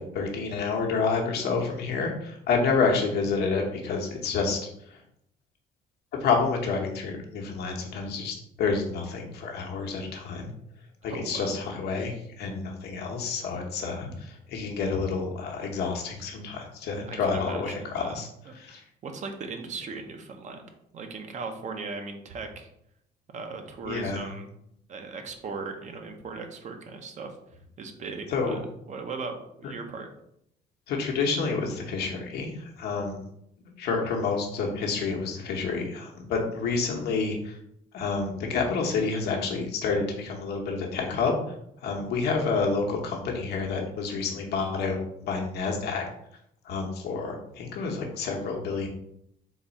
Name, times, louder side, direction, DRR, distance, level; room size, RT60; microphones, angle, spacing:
voice 1, 0.0-4.6 6.2-10.5 11.0-18.3 18.6-18.8 23.8-24.3 28.3-28.6 30.9-33.2 33.8-37.6 37.9-41.4 41.8-45.0 45.2-46.0 46.6-48.9, left 4 dB, 75° left, 1 dB, 0.9 m, -29 dB
voice 2, 11.1-11.5 17.0-22.7 23.3-24.5 24.9-27.3 27.8-30.1, right 4 dB, 45° right, 5 dB, 0.7 m, -38 dB
3.9 x 2.3 x 4.0 m, 0.75 s
cardioid pair, 110°, 17 cm